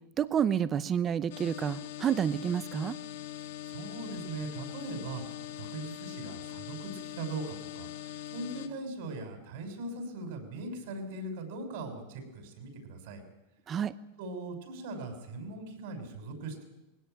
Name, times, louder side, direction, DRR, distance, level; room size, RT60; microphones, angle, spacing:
voice 1, 0.2-3.0 13.7-13.9, right 8 dB, 25° right, 15 dB, 0.8 m, -29 dB
sound 1, 1.3-8.7, left 11 dB, 75° left, 2.0 m, -42 dB
voice 2, 3.4-7.9 8.3-13.2 14.2-16.6, right 2 dB, 65° right, 6 dB, 6.3 m, -40 dB
20.5 x 17.5 x 9.3 m, 0.99 s
supercardioid pair, 140°, 0 cm